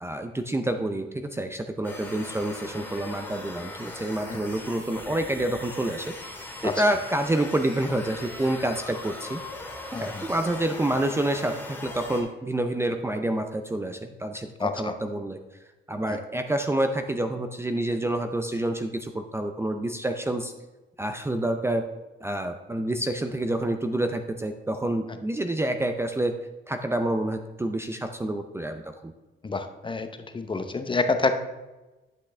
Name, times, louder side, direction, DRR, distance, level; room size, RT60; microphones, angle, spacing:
voice 1, 0.0-6.3 6.6-9.4 9.9-15.4 15.9-20.5 21.0-21.9 22.2-26.3 26.7-29.1, right 1 dB, 15° right, 6 dB, 0.5 m, -28 dB
sound 1, 1.8-12.2, left 2 dB, 10° left, 2.4 m, -40 dB
voice 2, 14.6-15.0 16.1-16.2 29.4-30.1 30.3-31.3, left 3 dB, 25° left, 8 dB, 0.8 m, -27 dB
10.5 x 5.9 x 3.3 m, 1.1 s
cardioid pair, 90°, 20 cm